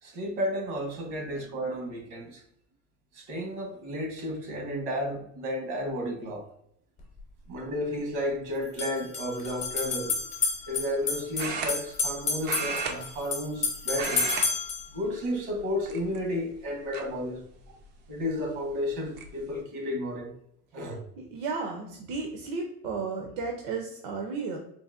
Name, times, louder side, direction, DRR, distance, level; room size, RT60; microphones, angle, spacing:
voice 1, 0.0-2.4 3.1-6.5 7.5-10.2 10.7-14.3 14.9-17.8 18.1-20.3 20.7-21.0, left 1 dB, 85° right, 1.3 m, -32 dB
sound 1, 7.0-7.1 8.6-14.9, left 4 dB, 20° left, 0.7 m, -31 dB
sound 2, 9.4-9.7 11.4-12.2 12.4-13.6 13.9-14.5 14.8-15.0 15.8-16.4 16.9-17.0 18.5-18.6 18.9-19.3, right 4 dB, 35° right, 0.4 m, -34 dB
voice 2, 21.3-24.6, right 4 dB, 70° right, 0.7 m, -33 dB
4.0 x 2.6 x 2.5 m
cardioid pair, 170°, 33 cm